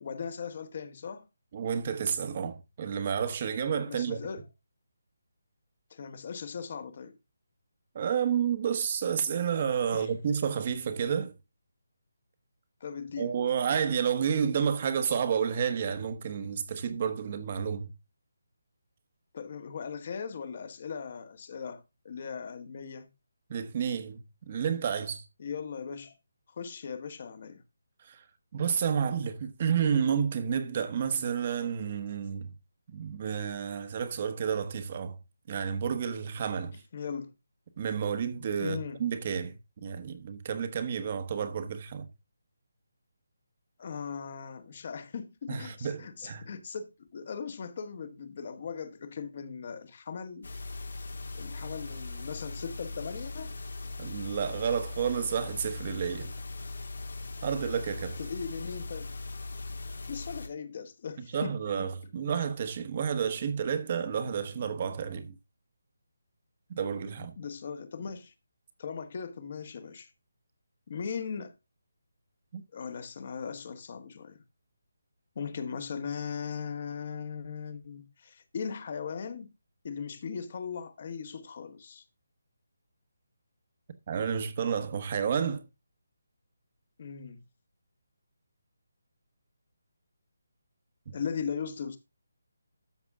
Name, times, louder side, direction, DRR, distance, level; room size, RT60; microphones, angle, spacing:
voice 1, 0.0-1.3 3.8-4.4 5.9-7.2 9.9-10.1 12.8-13.3 19.3-23.1 25.4-26.1 26.5-27.6 36.9-37.3 38.6-39.0 43.8-50.5 51.3-53.5 58.2-59.1 60.1-61.9 67.4-68.3 68.8-70.1 70.9-71.5 72.7-74.4 75.3-79.5 79.8-82.0 87.0-87.4 91.1-92.0, left 6 dB, 35° left, 1.4 m, -38 dB
voice 2, 1.5-4.2 7.9-11.3 13.2-17.9 23.5-25.2 28.1-28.2 28.5-32.5 32.9-35.2 35.5-36.8 37.8-42.1 45.5-46.5 54.0-56.3 57.4-58.2 61.3-65.4 66.7-67.3 72.5-72.6 84.1-85.6, right 7 dB, 30° right, 1.1 m, -30 dB
sound 1, 50.4-60.5, left 3 dB, 75° left, 2.3 m, -39 dB
13.0 x 6.9 x 3.6 m
hypercardioid pair, 170°, 0 cm